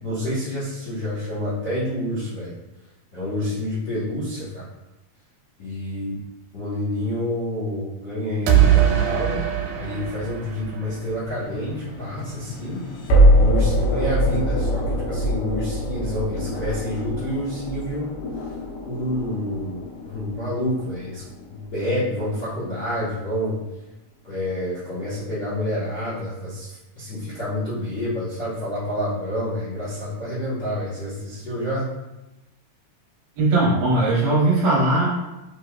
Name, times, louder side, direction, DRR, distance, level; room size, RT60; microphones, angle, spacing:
voice 1, 0.0-2.5 3.1-4.7 5.6-6.1 6.5-9.4 9.7-12.9 13.3-18.1 18.8-19.8 20.1-21.2 21.5-23.6 24.2-31.9, left 1 dB, 60° left, -12 dB, 1.1 m, -28 dB
sound 1, 8.5-11.4, right 10 dB, 85° right, 2.3 m, -21 dB
sound 2, 11.3-22.3, equal, 90° left, 2.6 m, -23 dB
voice 2, 33.4-35.1, right 2 dB, 65° right, -5 dB, 2.1 m, -19 dB
5.5 x 3.2 x 2.3 m, 1.0 s
omnidirectional pair, 3.8 m